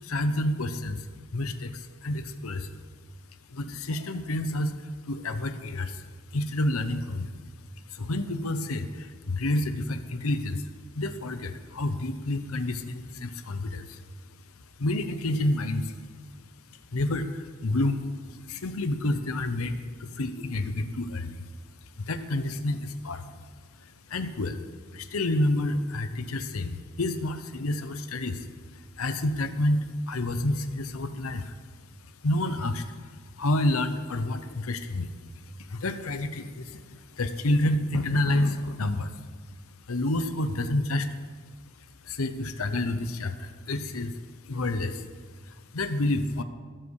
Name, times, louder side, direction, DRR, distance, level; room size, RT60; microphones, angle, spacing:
voice 1, 0.0-1.1 1.3-2.8 3.5-6.0 6.3-7.3 7.9-10.7 10.9-14.0 14.8-16.0 16.7-21.5 22.0-23.4 23.8-24.6 24.9-28.5 28.7-31.6 32.2-39.2 39.9-41.1 42.0-44.2 44.4-45.1 45.4-46.4, left 1 dB, 70° left, 9 dB, 0.9 m, -29 dB
21.0 x 7.9 x 4.8 m, 1.5 s
head